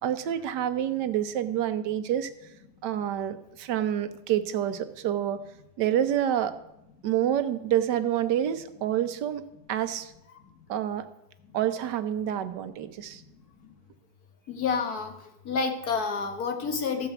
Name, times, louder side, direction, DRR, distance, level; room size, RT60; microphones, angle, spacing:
voice 1, 0.0-2.3 2.8-5.4 5.8-6.5 7.0-9.4 9.7-10.1 10.7-11.1 11.5-13.2, right 10 dB, 90° right, 11 dB, 1.4 m, -28 dB
voice 2, 14.5-15.1 15.5-17.1, left 5 dB, 65° left, 5 dB, 1.8 m, -28 dB
14.0 x 5.0 x 8.0 m, 0.86 s
omnidirectional pair, 1.8 m